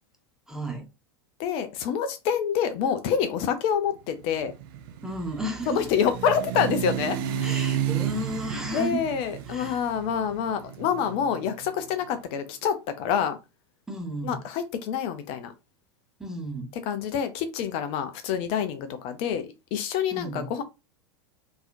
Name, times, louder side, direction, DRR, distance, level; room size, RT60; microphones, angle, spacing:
voice 1, 0.5-0.9 5.0-5.9 7.4-9.0 9.4-9.8 13.9-14.4 16.2-16.7 20.1-20.5, right 1 dB, 5° right, 1.1 m, -33 dB
voice 2, 1.4-4.5 5.7-7.2 8.7-13.4 14.2-15.5 16.9-20.6, left 8 dB, 40° left, 0.6 m, -27 dB
sound 1, 4.2-12.2, right 10 dB, 50° right, 0.6 m, -33 dB
3.8 x 2.8 x 2.5 m
figure-of-eight pair, 90°, 15 cm